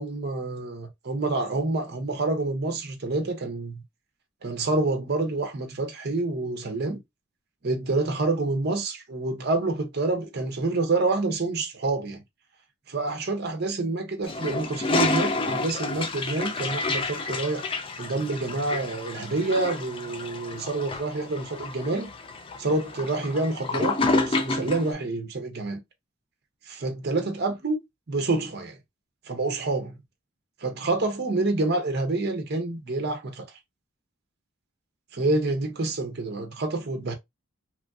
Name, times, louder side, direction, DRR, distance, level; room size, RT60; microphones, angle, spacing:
voice 1, 0.0-3.8 4.4-7.0 7.6-12.2 12.9-17.6 18.0-22.1 22.6-25.8 26.7-27.8 28.1-28.8 29.3-29.9 30.6-33.4 35.1-37.1, right 2 dB, 50° right, 0.6 m, -27 dB
Toilet flush, 14.2-24.9, left 3 dB, 25° left, 0.3 m, -29 dB
3.0 x 2.5 x 2.3 m
head